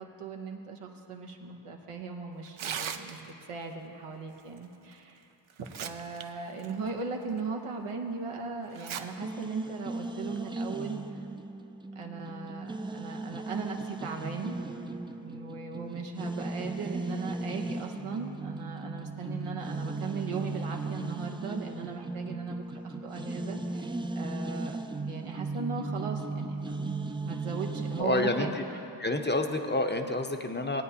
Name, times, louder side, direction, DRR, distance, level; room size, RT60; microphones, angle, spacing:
voice 1, 0.0-5.3 5.6-11.3 11.9-14.6 15.2-24.8 25.1-26.9 27.2-28.6, right 5 dB, 90° right, 2 dB, 1.0 m, -38 dB
Tearing, 2.5-3.4 4.9-5.0 5.5-6.2 6.6-6.7 7.4-7.5 8.7-9.0 9.4-9.5 10.4-10.6, right 8 dB, 70° right, 0.6 m, -37 dB
sound 1, 9.2-28.0, right 2 dB, 10° right, 0.3 m, -37 dB
voice 2, 28.0-28.5 29.0-30.8, left 2 dB, 20° left, 5 dB, 0.7 m, -28 dB
18.5 x 8.8 x 2.8 m, 2.9 s
cardioid pair, 40°, 50 cm